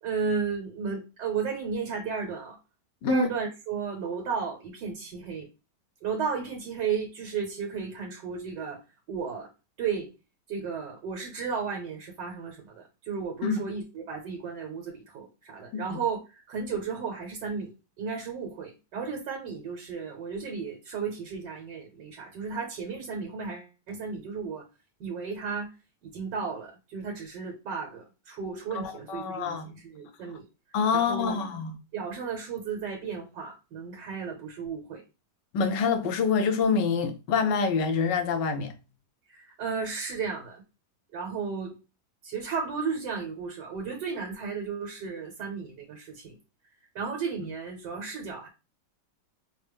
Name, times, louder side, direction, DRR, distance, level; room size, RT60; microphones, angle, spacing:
voice 1, 0.0-2.6 3.1-5.5 6.0-8.8 9.1-9.5 9.8-10.1 10.5-24.6 25.0-25.7 26.0-30.4 30.9-31.4 31.9-35.0 39.3-40.6 41.1-41.8 42.2-46.4 46.9-48.5, right 5 dB, 80° right, 1.6 m, -34 dB
voice 2, 28.8-29.7 30.7-31.8 35.5-38.7, left 5 dB, 90° left, 1.4 m, -26 dB
5.3 x 2.1 x 3.3 m
omnidirectional pair, 1.8 m